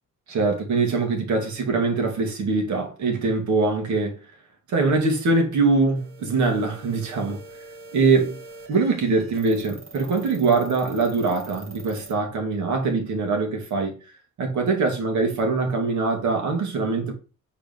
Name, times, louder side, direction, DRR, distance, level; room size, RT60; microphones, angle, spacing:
voice 1, 0.3-4.2 4.7-7.4 7.9-8.4 8.7-14.0 14.4-17.1, right 3 dB, 70° right, 2.5 m, -23 dB
sound 1, 6.0-12.1, right 2 dB, 45° right, 1.9 m, -45 dB
5.0 x 4.5 x 5.3 m
cardioid pair, 90°, 30 cm